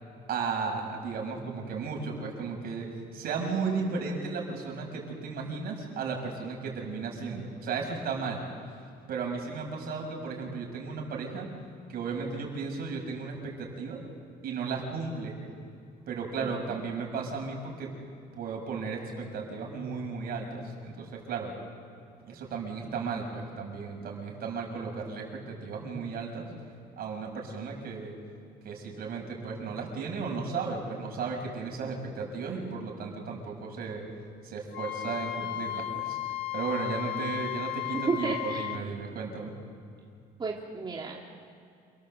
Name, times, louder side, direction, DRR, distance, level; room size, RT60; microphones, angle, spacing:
voice 1, 0.3-2.9 3.1-8.4 9.1-11.5 11.9-14.0 14.4-15.3 16.1-17.9 18.3-21.5 22.2-26.4 27.0-28.1 28.6-34.1 34.4-36.2 36.5-39.5, right 5 dB, 65° right, 1 dB, 6.8 m, -35 dB
Wind instrument woodwind instrument, 34.7-38.8, left 14 dB, 90° left, 1.2 m, -35 dB
voice 2, 38.1-38.7 40.4-41.2, right 4 dB, 30° right, -1 dB, 2.5 m, -32 dB
29.0 x 18.0 x 8.0 m, 2.5 s
cardioid pair, 110°, 17 cm